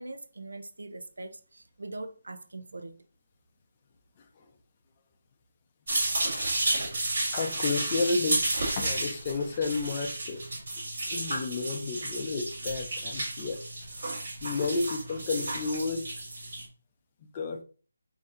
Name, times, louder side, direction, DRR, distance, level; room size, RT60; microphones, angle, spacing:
voice 1, 0.0-3.0, right 2 dB, 85° right, 0.5 m, -42 dB
voice 2, 4.2-4.5 7.3-8.5 8.8-10.4 11.1-13.6 14.4-16.1 17.2-17.6, left 3 dB, 20° left, 0.5 m, -31 dB
sound 1, 5.9-16.7, right 2 dB, 50° right, 2.1 m, -32 dB
3.9 x 2.7 x 3.7 m
figure-of-eight pair, 175°, 0 cm